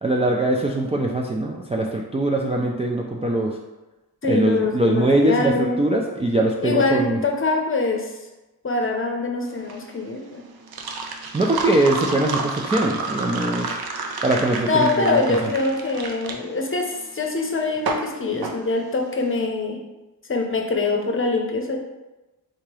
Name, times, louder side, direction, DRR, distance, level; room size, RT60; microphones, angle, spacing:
voice 1, 0.0-3.5 4.2-7.2 11.3-13.7 14.2-15.5, right 1 dB, 15° right, -1 dB, 0.3 m, -22 dB
voice 2, 4.2-5.8 6.6-8.2 8.6-10.5 14.6-19.8 20.3-21.8, left 3 dB, 30° left, 1 dB, 0.7 m, -24 dB
sound 1, 9.5-19.3, right 4 dB, 70° right, 0.6 m, -30 dB
3.8 x 2.8 x 4.7 m, 1.0 s
wide cardioid pair, 110°, 39 cm